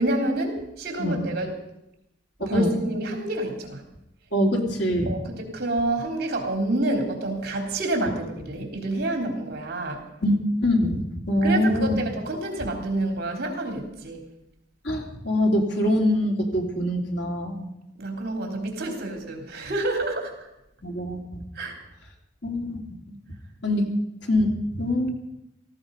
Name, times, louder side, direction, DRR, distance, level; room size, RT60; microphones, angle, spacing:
voice 1, 0.0-1.5 2.5-3.8 5.1-10.0 11.4-14.2 18.0-20.5 21.6-21.8, right 1 dB, 55° right, 3 dB, 3.5 m, -28 dB
voice 2, 2.4-2.7 4.3-5.1 10.2-12.0 14.8-17.7 20.8-21.4 22.4-22.8 23.6-23.9 24.2-25.1, left 1 dB, 75° left, 1 dB, 3.3 m, -24 dB
17.5 x 15.5 x 5.4 m, 0.83 s
head